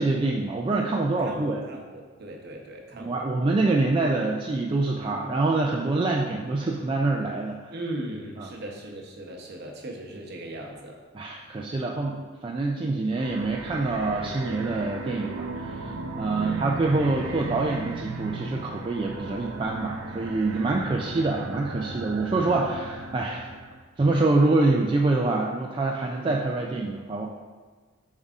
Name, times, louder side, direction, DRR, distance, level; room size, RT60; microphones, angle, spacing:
voice 1, 0.0-1.6 3.0-7.6 8.4-8.5 11.1-23.4 24.0-27.3, right 2 dB, 25° right, -1 dB, 0.3 m, -25 dB
voice 2, 1.3-3.2 7.7-11.0 16.4-16.8 20.5-21.1, right 1 dB, 50° right, 0 dB, 0.8 m, -38 dB
sound 1, 13.1-23.8, right 3 dB, 75° right, 0.5 m, -36 dB
7.1 x 5.4 x 2.4 m, 1.4 s
head